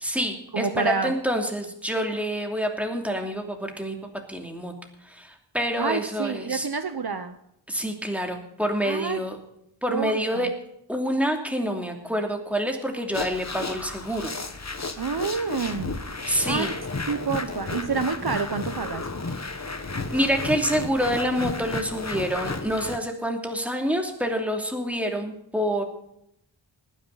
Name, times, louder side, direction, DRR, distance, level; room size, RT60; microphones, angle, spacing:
voice 1, 0.0-4.0 4.3-4.7 5.1-6.7 7.7-9.4 9.8-10.5 10.9-14.3 16.3-16.7 20.1-25.8, equal, 5° right, 2 dB, 2.8 m, -27 dB
voice 2, 0.5-1.1 5.8-7.4 8.8-9.2 9.9-10.5 15.0-16.7 17.1-19.1, right 5 dB, 55° right, 9 dB, 0.9 m, -28 dB
sound 1, 13.1-23.0, left 3 dB, 35° left, 1.3 m, -33 dB
19.5 x 10.0 x 4.1 m, 0.76 s
wide cardioid pair, 60°, 46 cm